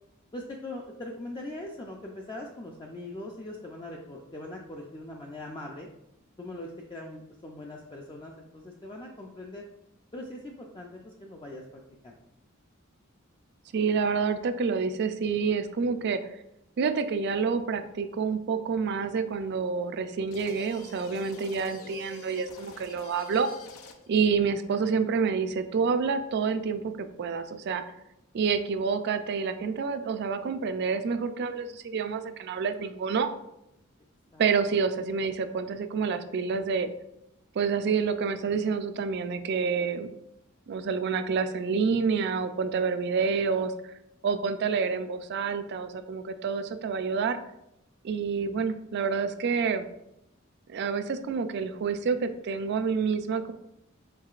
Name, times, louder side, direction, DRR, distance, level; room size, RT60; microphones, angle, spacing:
voice 1, 0.3-5.9 6.4-9.7 10.1-12.2 34.3-34.8, left 1 dB, 20° left, -1 dB, 0.3 m, -41 dB
voice 2, 13.7-16.2 16.8-23.5 24.1-27.9 28.3-33.3 34.4-36.9 37.6-40.1 40.7-43.7 44.2-47.4 48.0-49.9 50.7-53.5, right 5 dB, 55° right, 10 dB, 0.3 m, -28 dB
sound 1, 20.3-24.2, left 4 dB, 85° left, 0.5 m, -47 dB
4.6 x 3.9 x 2.4 m, 0.83 s
head